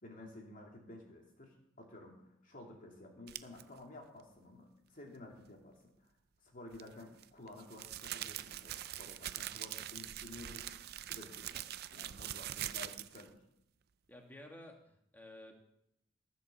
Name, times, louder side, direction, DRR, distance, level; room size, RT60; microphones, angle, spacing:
voice 1, 0.0-5.8 6.4-10.8 11.1-13.4, left 2 dB, 45° left, 0 dB, 2.7 m, -53 dB
sound 1, 3.3-3.6 6.7-13.3, right 12 dB, 50° right, 0.5 m, -43 dB
voice 2, 14.1-15.6, left 1 dB, 10° left, 2 dB, 1.7 m, -53 dB
14.5 x 6.2 x 7.0 m, 0.77 s
head